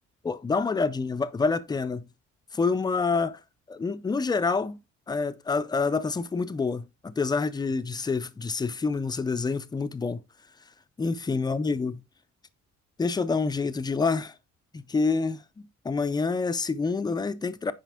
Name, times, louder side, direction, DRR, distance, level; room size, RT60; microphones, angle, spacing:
voice 1, 0.2-2.1 2.5-3.4 3.7-4.8 5.1-10.2 11.0-12.0 13.0-14.3 14.7-17.7, left 4 dB, 15° left, 0.4 m, -27 dB
9.1 x 5.0 x 3.5 m
cardioid pair, 170°, 29 cm